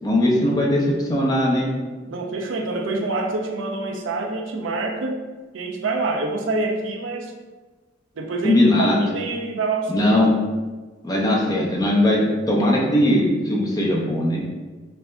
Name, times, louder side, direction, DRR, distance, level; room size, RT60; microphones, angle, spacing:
voice 1, 0.0-1.7 8.4-9.0 9.9-10.3 11.0-14.4, left 1 dB, 20° left, -3 dB, 0.7 m, -19 dB
voice 2, 2.1-5.2 5.5-7.3 8.2-10.2, right 3 dB, 85° right, 2 dB, 0.6 m, -26 dB
6.6 x 2.6 x 2.2 m, 1.3 s
head